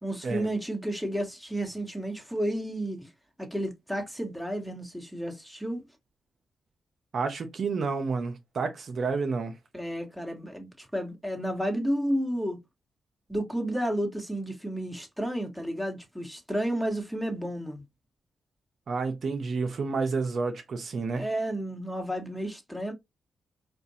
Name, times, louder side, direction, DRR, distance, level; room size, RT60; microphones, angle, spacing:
voice 1, 0.0-3.1 3.4-5.8 9.7-12.6 13.3-17.8 21.1-22.9, right 1 dB, ahead, 1.4 m, -31 dB
voice 2, 7.1-9.5 18.9-21.2, right 4 dB, 60° right, 0.7 m, -30 dB
4.4 x 2.5 x 2.7 m
cardioid pair, 70°, 0 cm